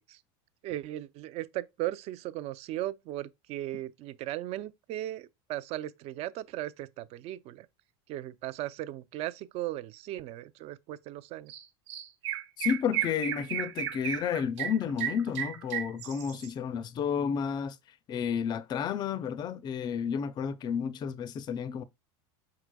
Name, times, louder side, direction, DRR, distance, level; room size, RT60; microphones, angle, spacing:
voice 1, 0.6-7.7 8.1-11.5, right 14 dB, 45° right, 0.4 m, -37 dB
Chirp tweet, 11.5-11.6 11.9-16.5, right 12 dB, 90° right, 1.2 m, -34 dB
voice 2, 12.6-17.8 18.1-21.8, left 7 dB, 30° left, 0.4 m, -31 dB
4.8 x 3.9 x 2.2 m
supercardioid pair, 125°, 14 cm